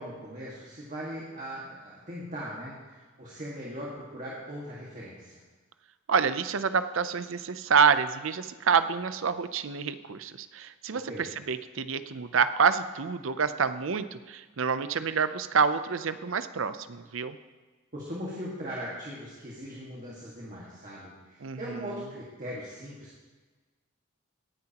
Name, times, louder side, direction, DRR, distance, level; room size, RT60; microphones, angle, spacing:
voice 1, 0.0-5.4 10.9-11.3 17.9-23.2, equal, 35° right, -5 dB, 1.8 m, -40 dB
voice 2, 6.1-17.4 21.4-21.9, right 6 dB, 65° right, 12 dB, 0.6 m, -27 dB
17.5 x 9.6 x 2.9 m, 1.3 s
head